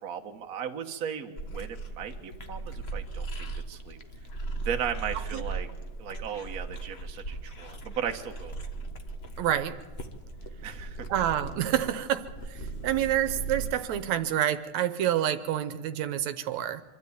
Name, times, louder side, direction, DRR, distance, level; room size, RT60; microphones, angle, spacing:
voice 1, 0.0-4.0 4.6-5.7 6.0-8.7 10.6-11.1, right 8 dB, 45° right, 4 dB, 1.3 m, -36 dB
sound 1, 1.4-13.7, right 3 dB, 60° left, 0.6 m, -38 dB
voice 2, 9.4-9.7 11.1-16.8, right 11 dB, 75° right, 11 dB, 2.2 m, -28 dB
25.0 x 13.0 x 9.6 m, 1.2 s
omnidirectional pair, 3.3 m